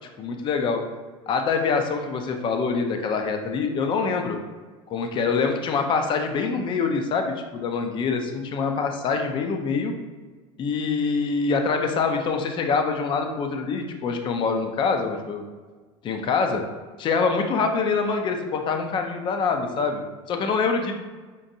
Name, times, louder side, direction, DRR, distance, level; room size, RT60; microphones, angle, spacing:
voice 1, 0.2-0.8 1.3-4.4 4.9-9.9 10.6-15.4 16.0-16.6 17.0-20.0 20.3-20.9, left 5 dB, 30° left, 5 dB, 0.4 m, -25 dB
5.2 x 2.5 x 2.6 m, 1.4 s
supercardioid pair, 120°, 16 cm